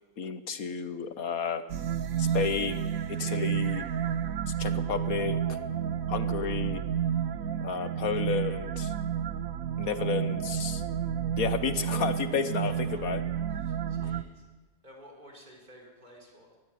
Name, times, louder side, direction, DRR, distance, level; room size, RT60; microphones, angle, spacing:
voice 1, 0.2-1.6 2.2-3.8 4.6-5.6 6.1-6.8 7.6-8.9 9.8-10.8 11.4-13.2, left 6 dB, 70° left, 10 dB, 1.8 m, -32 dB
sound 1, 1.7-14.2, right 9 dB, 70° right, 1.3 m, -31 dB
voice 2, 12.5-13.0 13.5-14.4 14.8-16.6, equal, 30° right, -1 dB, 5.5 m, -53 dB
22.0 x 16.5 x 9.6 m, 1.3 s
omnidirectional pair, 1.6 m